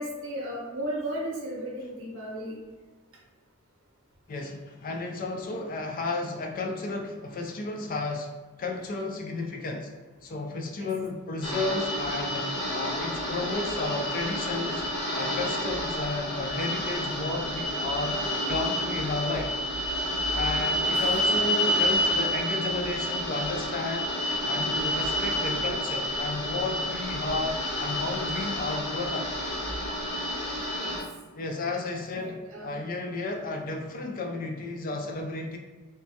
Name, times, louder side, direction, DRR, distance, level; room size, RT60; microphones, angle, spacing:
voice 1, 0.0-2.5 10.8-10.9 20.8-20.9 30.7-31.0 32.2-32.8, right 1 dB, 65° right, -3 dB, 0.8 m, -35 dB
voice 2, 4.3-8.3 8.6-9.9 10.2-12.5 12.7-14.8 15.2-18.2 18.5-19.5 20.3-24.1 24.5-29.3 31.4-35.6, left 3 dB, 40° left, 2 dB, 0.4 m, -32 dB
sound 1, 11.4-31.0, equal, 75° left, 1.2 m, -29 dB
3.3 x 2.2 x 2.7 m, 1.3 s
head